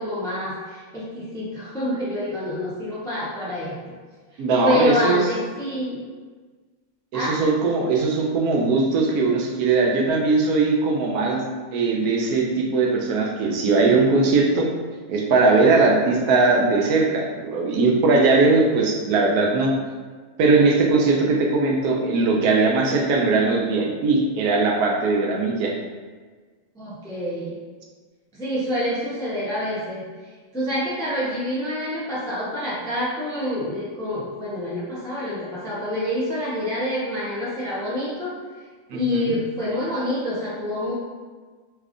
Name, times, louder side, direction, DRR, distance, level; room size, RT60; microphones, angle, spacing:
voice 1, 0.0-4.0 4.3-6.1 7.1-7.4 26.7-27.6 28.3-30.0 30.5-38.3 38.9-40.9, left 1 dB, 5° left, -7 dB, 0.3 m, -27 dB
voice 2, 4.4-5.2 7.1-11.4 11.7-14.7 15.1-19.7 20.4-25.7 38.9-39.3, right 3 dB, 75° right, 0 dB, 1.1 m, -20 dB
3.2 x 2.4 x 3.5 m, 1.4 s
omnidirectional pair, 1.6 m